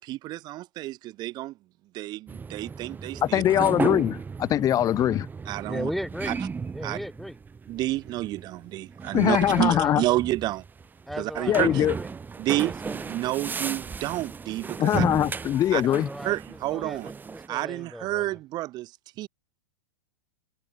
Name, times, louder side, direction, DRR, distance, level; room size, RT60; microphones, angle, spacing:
voice 1, 0.0-1.5 1.9-3.6 5.5-5.9 6.3-6.4 6.8-7.0 7.7-10.6 11.2-11.8 12.4-15.1 15.7-15.8 16.2-17.1 17.5-18.9 19.2-19.3, right 17 dB, 35° right, 0.8 m, -30 dB
sound 1, 2.3-17.5, right 5 dB, 15° right, 2.0 m, -35 dB
voice 2, 3.2-5.3 9.1-10.0 11.5-11.9 14.8-16.1, left 11 dB, 30° left, 1.3 m, -22 dB
voice 3, 5.7-6.4 6.7-7.4 9.5-10.0 11.1-12.1 12.6-13.1 14.9-15.0 15.8-18.3, equal, ahead, 2.0 m, -37 dB
hypercardioid pair, 105°, 12 cm